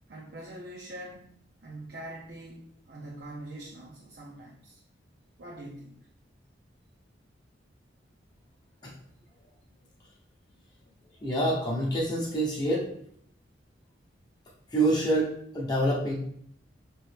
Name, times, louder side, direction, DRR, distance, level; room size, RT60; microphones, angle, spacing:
voice 1, 0.1-4.8 5.4-6.1, right 1 dB, 55° right, -4 dB, 0.7 m, -44 dB
voice 2, 11.2-12.9 14.7-16.1, right 1 dB, 25° left, -4 dB, 0.8 m, -26 dB
5.2 x 3.1 x 3.3 m, 0.66 s
head